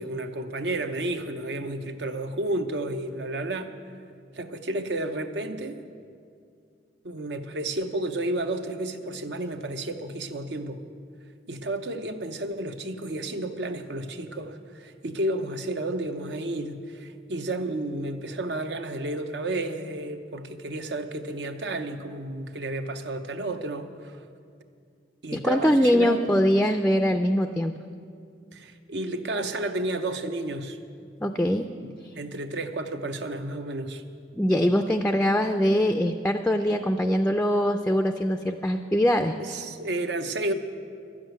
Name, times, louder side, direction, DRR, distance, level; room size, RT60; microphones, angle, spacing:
voice 1, 0.0-3.7 4.3-5.8 7.0-10.8 11.5-24.2 25.2-26.3 28.5-30.8 32.1-34.0 39.4-40.5, right 1 dB, 75° right, 7 dB, 0.8 m, -31 dB
voice 2, 25.3-27.7 31.2-31.7 34.3-39.4, equal, 5° left, 7 dB, 0.3 m, -23 dB
12.0 x 7.5 x 9.0 m, 2.4 s
head